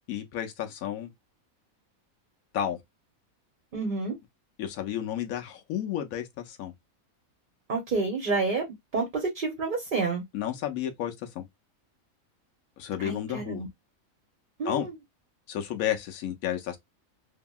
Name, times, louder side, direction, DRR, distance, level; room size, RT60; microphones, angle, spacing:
voice 1, 0.1-1.1 2.5-2.8 4.6-6.7 10.3-11.5 12.8-13.6 14.6-14.9 15.5-16.8, left 10 dB, 85° left, 1.1 m, -32 dB
voice 2, 3.7-4.1 7.7-8.6 8.9-10.2 13.0-13.7 14.6-14.9, right 4 dB, 45° right, 0.7 m, -29 dB
2.8 x 2.7 x 2.2 m
omnidirectional pair, 1.4 m